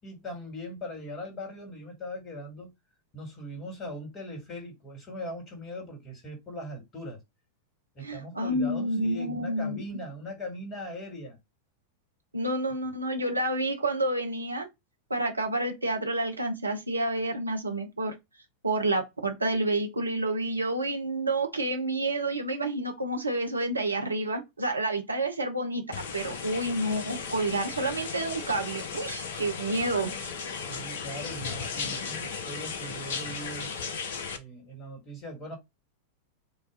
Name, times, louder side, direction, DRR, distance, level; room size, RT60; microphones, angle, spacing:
voice 1, 0.0-2.7 3.1-7.2 7.9-11.4 30.5-33.7 34.3-35.6, equal, 25° left, 2.5 m, -40 dB
voice 2, 8.0-9.8 12.3-14.7 15.1-18.1 18.6-25.8 26.1-30.1, right 2 dB, 80° right, 0.9 m, -29 dB
sound 1, 25.9-34.4, left 6 dB, 60° left, 0.7 m, -36 dB
4.9 x 2.7 x 3.9 m
figure-of-eight pair, 90°, 0 cm